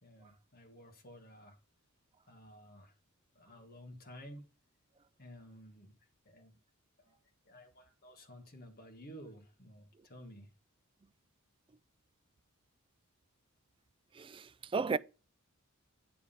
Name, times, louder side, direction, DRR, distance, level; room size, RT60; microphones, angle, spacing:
voice 1, 0.0-1.6 2.3-2.9 3.3-4.4 5.2-5.9 6.2-6.5 7.0-7.2 7.4-10.5, equal, 45° left, 1.7 m, -53 dB
voice 2, 14.2-15.0, right 5 dB, 25° right, 0.3 m, -34 dB
9.5 x 3.6 x 5.4 m
head